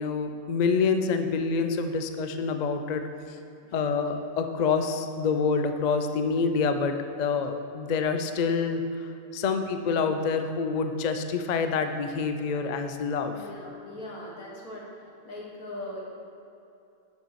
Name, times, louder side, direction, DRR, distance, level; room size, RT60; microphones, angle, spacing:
voice 1, 0.0-3.0 3.7-13.4, left 5 dB, 65° left, 7 dB, 0.4 m, -27 dB
voice 2, 3.6-4.0 13.3-14.9 15.2-16.0, left 1 dB, 90° left, -3 dB, 2.2 m, -40 dB
10.0 x 6.6 x 4.7 m, 2.7 s
omnidirectional pair, 1.5 m